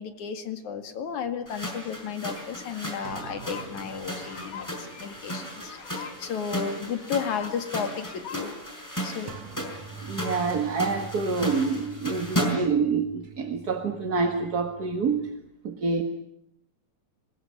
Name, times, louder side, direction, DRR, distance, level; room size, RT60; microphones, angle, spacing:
voice 1, 0.0-5.7 6.2-8.6 9.0-9.4, left 7 dB, 70° left, 7 dB, 3.4 m, -33 dB
sound 1, 1.5-12.8, equal, 5° left, 5.6 m, -35 dB
sound 2, 2.4-2.5 2.8-8.4, left 7 dB, 45° left, 2.5 m, -44 dB
sound 3, 3.0-6.2 6.5-6.7 9.3-15.3, right 6 dB, 65° right, 2.2 m, -45 dB
voice 2, 10.0-15.3 15.6-16.0, right 4 dB, 40° right, 5 dB, 1.6 m, -27 dB
25.5 x 21.0 x 9.5 m, 0.76 s
omnidirectional pair, 3.6 m